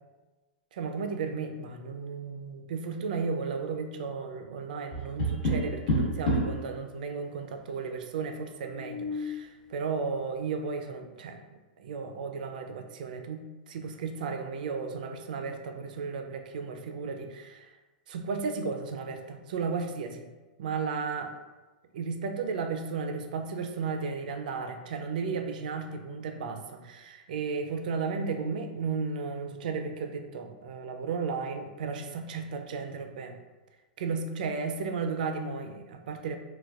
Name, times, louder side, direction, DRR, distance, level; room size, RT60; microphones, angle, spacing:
voice 1, 0.7-11.4 11.8-17.7 18.1-20.3 20.6-21.3 21.9-33.4 34.0-36.4, right 5 dB, 70° right, 6 dB, 0.4 m, -34 dB
Tap, 4.9-6.6 8.6-9.4, equal, 60° left, 1.3 m, -29 dB
4.0 x 2.2 x 2.3 m, 1.2 s
hypercardioid pair, 145°, 5 cm